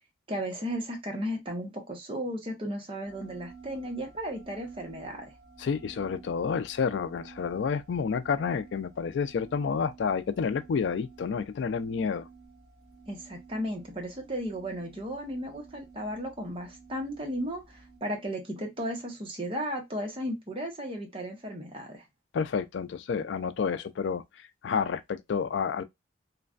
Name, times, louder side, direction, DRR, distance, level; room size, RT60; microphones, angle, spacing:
voice 1, 0.3-5.3 13.1-22.0, equal, 30° right, 0.8 m, -35 dB
sound 1, 3.0-18.0, right 4 dB, 55° right, 1.2 m, -52 dB
voice 2, 5.6-12.3 22.3-25.8, left 6 dB, 75° left, 0.3 m, -30 dB
3.1 x 2.2 x 2.4 m
head